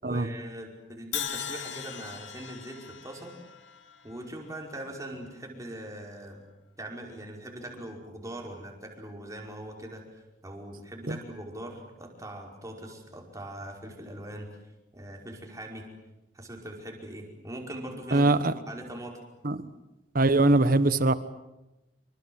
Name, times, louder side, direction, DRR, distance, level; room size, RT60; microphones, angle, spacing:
voice 1, 0.0-3.3 4.0-6.4 6.8-10.0 10.4-14.5 14.9-15.9 16.3-18.3 18.7-19.2, right 1 dB, 20° right, 5.1 m, -41 dB
Crash cymbal, 1.1-5.2, left 9 dB, 90° left, 2.4 m, -39 dB
voice 2, 18.1-18.5 19.4-19.7 20.1-21.1, right 2 dB, 50° right, 1.3 m, -22 dB
26.5 x 25.5 x 7.9 m
head